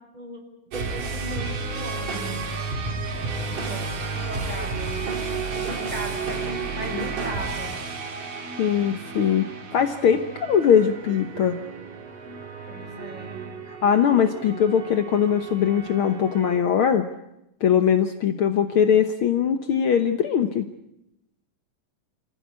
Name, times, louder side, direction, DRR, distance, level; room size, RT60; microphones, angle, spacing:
voice 1, 0.7-2.4 3.4-5.2 5.5-7.7 12.6-13.4, equal, 10° right, 2 dB, 5.9 m, -37 dB
sound 1, 0.7-16.6, right 4 dB, 70° right, 4.3 m, -32 dB
voice 2, 8.6-9.5 9.7-11.6 13.8-17.0 17.6-20.7, left 8 dB, 75° left, 7 dB, 1.2 m, -21 dB
28.0 x 15.0 x 9.6 m, 0.87 s
omnidirectional pair, 3.9 m